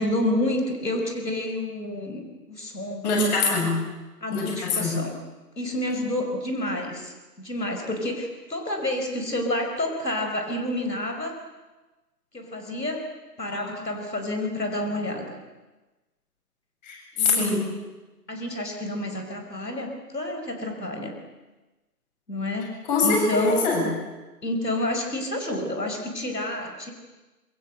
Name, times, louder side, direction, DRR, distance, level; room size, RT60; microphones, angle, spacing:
voice 1, 0.0-3.1 4.2-5.1 5.6-11.4 12.3-13.1 13.4-15.4 17.2-17.6 18.3-21.1 22.3-22.8 23.0-23.7 24.4-26.9, left 1 dB, 85° left, 4 dB, 5.6 m, -29 dB
voice 2, 3.0-3.8 4.3-4.9 13.5-13.7 16.8-17.6 22.9-23.8, left 3 dB, 25° left, 0 dB, 7.5 m, -24 dB
26.5 x 23.5 x 7.9 m, 1.1 s
figure-of-eight pair, 150°, 48 cm